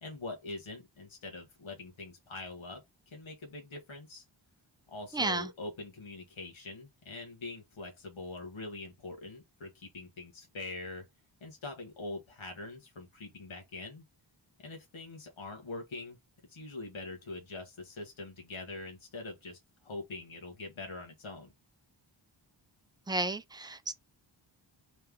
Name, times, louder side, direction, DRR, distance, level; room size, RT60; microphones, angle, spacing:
voice 1, 0.0-4.2 4.9-11.1 11.4-14.0 14.6-16.2 16.5-21.5, left 2 dB, 80° left, 1.6 m, -43 dB
voice 2, 5.1-5.5 23.1-23.9, right 2 dB, 10° right, 0.5 m, -32 dB
3.4 x 3.0 x 3.5 m
wide cardioid pair, 80°, 47 cm